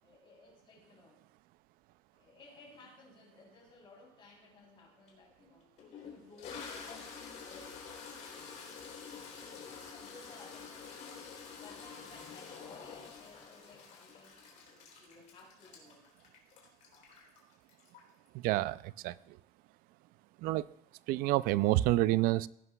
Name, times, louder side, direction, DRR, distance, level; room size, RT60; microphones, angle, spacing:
voice 1, 0.0-1.2 2.1-5.7 6.0-7.8 9.4-9.6 9.9-11.2 11.6-16.1, left 3 dB, 35° left, 0 dB, 3.4 m, -58 dB
Toilet flush, 5.1-5.2 5.8-18.3, left 5 dB, 55° left, 3.1 m, -48 dB
voice 2, 18.3-19.4 20.4-20.7 21.1-22.5, right 17 dB, 85° right, 19 dB, 0.4 m, -29 dB
17.0 x 11.0 x 2.3 m, 0.81 s
cardioid pair, 165°, 14 cm